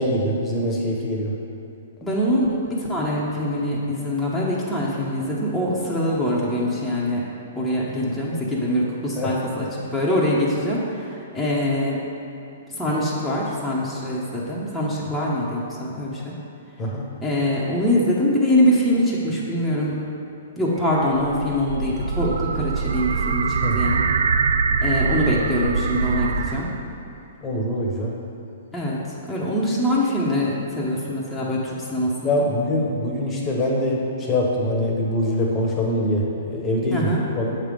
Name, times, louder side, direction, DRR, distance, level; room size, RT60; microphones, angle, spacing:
voice 1, 0.0-1.3 9.2-9.3 16.8-17.1 23.6-23.8 27.4-28.1 32.2-37.1 37.3-37.6, left 1 dB, 25° left, -2 dB, 1.0 m, -23 dB
voice 2, 2.0-7.2 7.6-12.0 12.7-16.4 17.2-20.0 20.6-24.0 24.8-26.7 28.7-32.5 36.9-37.2, left 1 dB, 5° left, -8 dB, 0.9 m, -23 dB
sound 1, 20.8-26.9, right 5 dB, 70° right, 0.3 m, -23 dB
7.2 x 3.3 x 5.1 m, 2.6 s
hypercardioid pair, 125°, 0 cm